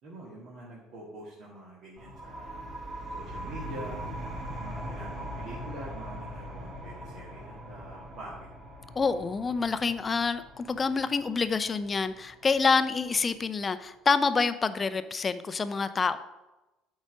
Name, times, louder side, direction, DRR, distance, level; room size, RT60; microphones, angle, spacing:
voice 1, 0.0-2.6 3.1-4.0 4.6-8.5, right 1 dB, 60° right, -5 dB, 1.8 m, -45 dB
sound 1, 2.0-13.3, equal, 40° right, 2.3 m, -41 dB
voice 2, 9.0-16.2, left 4 dB, 30° left, 12 dB, 0.6 m, -27 dB
8.4 x 4.1 x 5.2 m, 1.1 s
hypercardioid pair, 65°, 0 cm